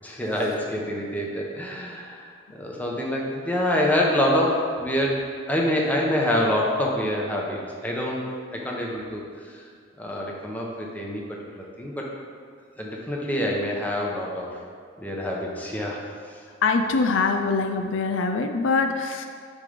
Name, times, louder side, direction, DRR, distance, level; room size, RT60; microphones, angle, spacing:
voice 1, 0.0-5.2 5.5-8.2 8.5-9.6 10.0-12.1 12.8-14.6 15.0-16.0, left 1 dB, 10° left, -2 dB, 0.9 m, -26 dB
voice 2, 16.6-19.3, left 4 dB, 75° left, 5 dB, 0.4 m, -23 dB
9.2 x 3.3 x 5.1 m, 2.2 s
head